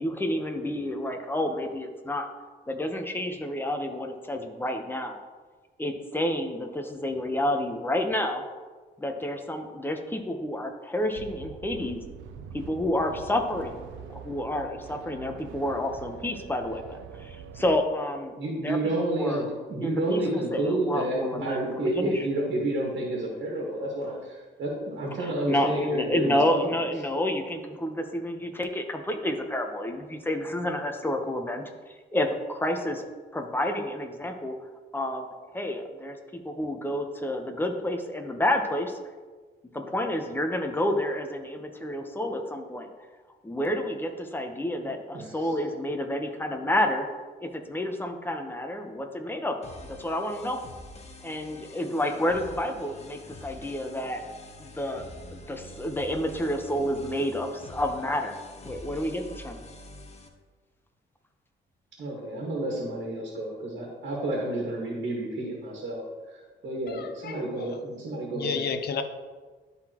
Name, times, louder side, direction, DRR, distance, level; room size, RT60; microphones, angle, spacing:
voice 1, 0.0-2.3 2.7-5.2 5.8-8.5 9.0-12.0 12.5-18.3 18.6-19.4 19.8-20.2 20.5-22.3 25.2-33.1 33.3-34.6 34.9-35.3 35.5-36.2 36.4-38.9 39.7-42.9 43.4-47.1 47.4-49.6 49.9-50.6 51.2-54.2 54.6-55.0 55.3-58.4 58.6-59.6, left 1 dB, 10° left, 4 dB, 0.9 m, -29 dB
sound 1, 11.1-17.8, right 7 dB, 80° right, 0.5 m, -44 dB
voice 2, 18.4-26.8 44.8-45.5 62.0-66.0 66.3-68.6, right 1 dB, 60° right, -2 dB, 1.8 m, -30 dB
sound 2, 49.6-60.3, left 1 dB, 35° left, 1.0 m, -46 dB
voice 3, 66.9-67.8 68.4-69.0, left 6 dB, 55° left, 7 dB, 0.7 m, -32 dB
12.0 x 4.0 x 3.0 m, 1.4 s
cardioid pair, 90°, 20 cm